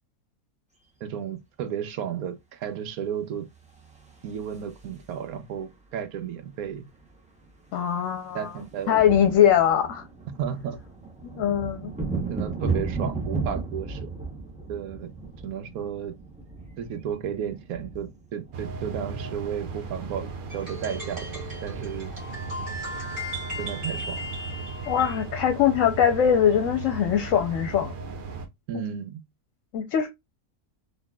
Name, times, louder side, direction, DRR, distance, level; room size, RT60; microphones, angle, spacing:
voice 1, 1.0-3.5 4.2-6.9 8.3-9.0 10.4-10.8 12.3-14.1 14.7-15.1 15.4-16.2 16.8-22.1 23.6-24.3 28.7-29.2, right 8 dB, 80° right, 1.1 m, -33 dB
sound 1, 3.7-5.3 6.6-6.7 6.9-7.1 7.4-19.5, right 4 dB, 10° right, 0.5 m, -35 dB
voice 2, 7.7-8.5 8.9-10.0 11.2-11.9 24.9-27.9 29.7-30.1, left 9 dB, 65° left, 0.9 m, -22 dB
sound 2, 18.5-28.5, right 4 dB, 60° right, 0.5 m, -37 dB
sound 3, 20.5-25.3, left 1 dB, 35° right, 2.0 m, -37 dB
4.0 x 3.1 x 2.2 m
omnidirectional pair, 1.5 m